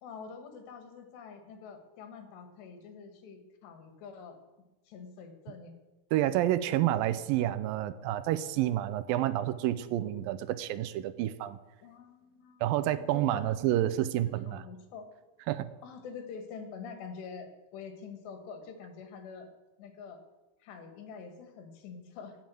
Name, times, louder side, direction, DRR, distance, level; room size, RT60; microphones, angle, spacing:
voice 1, 0.0-4.4 4.9-5.7 11.8-13.5 14.1-15.1 15.8-19.5 19.8-20.2 20.6-22.4, left 5 dB, 90° left, 6 dB, 4.0 m, -46 dB
voice 2, 6.1-11.6 12.6-14.6 15.5-15.7, right 13 dB, 85° right, 13 dB, 2.0 m, -29 dB
17.5 x 7.3 x 7.8 m, 1.1 s
omnidirectional pair, 4.8 m